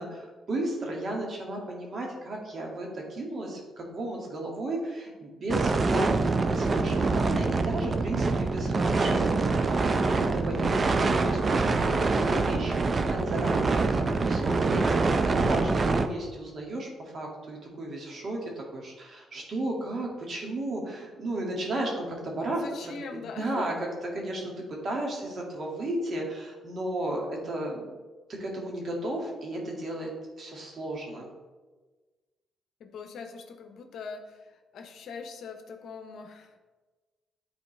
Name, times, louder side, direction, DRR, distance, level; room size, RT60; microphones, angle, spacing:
voice 1, 0.0-23.7 24.1-27.9 28.3-30.1 30.4-31.3, right 1 dB, 50° right, -1 dB, 2.0 m, -34 dB
sound 1, 5.5-16.1, right 3 dB, 35° right, 0.5 m, -25 dB
voice 2, 22.6-23.7 32.8-36.6, left 5 dB, 70° left, 6 dB, 0.8 m, -42 dB
10.5 x 4.2 x 3.3 m, 1.3 s
cardioid pair, 90°, 0 cm